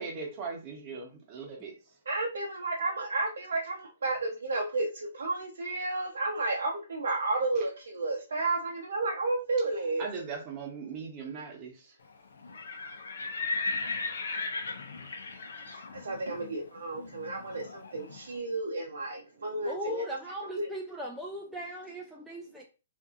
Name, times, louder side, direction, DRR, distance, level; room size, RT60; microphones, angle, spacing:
voice 1, 0.0-1.7 10.0-11.7, right 5 dB, 30° right, 1 dB, 0.9 m, -39 dB
voice 2, 2.1-10.1 15.7-20.1 20.6-20.7, right 2 dB, 80° right, -2 dB, 0.6 m, -32 dB
Livestock farm animals working animals, 12.4-18.2, left 3 dB, 75° left, 0.6 m, -37 dB
voice 3, 19.6-22.6, equal, ahead, -3 dB, 0.4 m, -38 dB
2.6 x 2.5 x 2.5 m, 0.32 s
hypercardioid pair, 145°, 0 cm